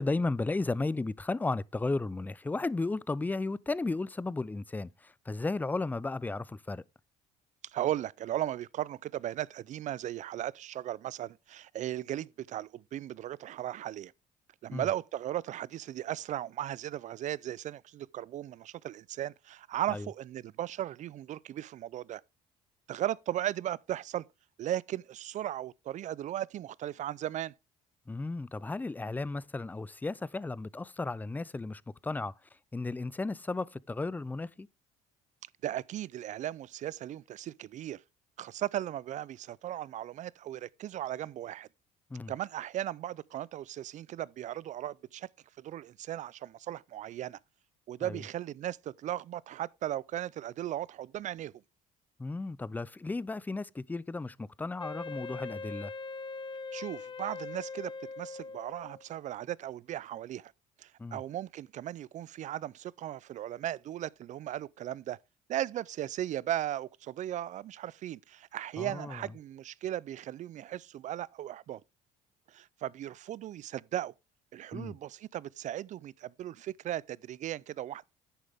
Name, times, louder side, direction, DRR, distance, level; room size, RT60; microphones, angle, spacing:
voice 1, 0.0-6.8 14.7-14.9 19.9-20.1 28.1-32.3 32.7-34.7 42.1-42.3 48.0-48.2 52.2-55.9 61.0-61.2 68.8-69.2 74.7-75.0, left 3 dB, 10° left, 0.5 m, -34 dB
voice 2, 7.6-14.1 14.6-22.2 22.9-24.2 24.6-27.5 35.6-38.0 38.4-41.7 42.3-45.3 45.6-47.4 47.9-51.5 56.7-60.5 60.8-65.2 65.5-71.8 72.5-74.1 74.5-78.0, right 12 dB, 55° right, 0.5 m, -37 dB
Wind instrument woodwind instrument, 54.8-59.1, left 4 dB, 30° left, 0.8 m, -41 dB
10.0 x 9.2 x 3.5 m
cardioid pair, 95°, 15 cm